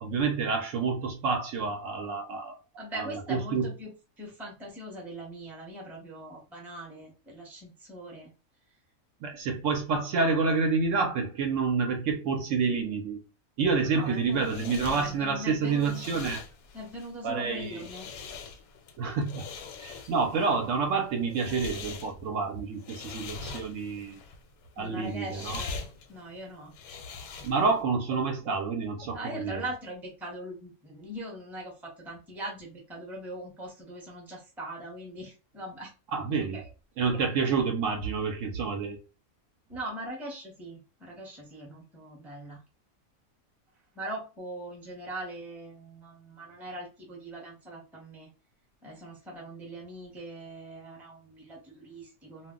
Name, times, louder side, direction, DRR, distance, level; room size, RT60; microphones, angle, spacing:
voice 1, 0.0-2.6 2.9-3.7 9.2-13.2 13.6-16.4 17.2-17.8 19.0-19.4 19.8-24.2 24.8-25.6 27.4-29.6 36.1-36.6 37.0-39.0, right 4 dB, 70° right, 0.9 m, -28 dB
voice 2, 2.8-8.3 13.8-16.0 16.7-18.1 24.8-25.8 26.1-26.8 29.1-35.9 36.5-36.7 37.0-37.1 39.7-42.6 43.9-48.3 48.8-52.5, right 1 dB, ahead, 0.6 m, -41 dB
sound 1, 14.0-27.8, left 4 dB, 85° left, 1.0 m, -43 dB
2.4 x 2.1 x 3.6 m
omnidirectional pair, 1.5 m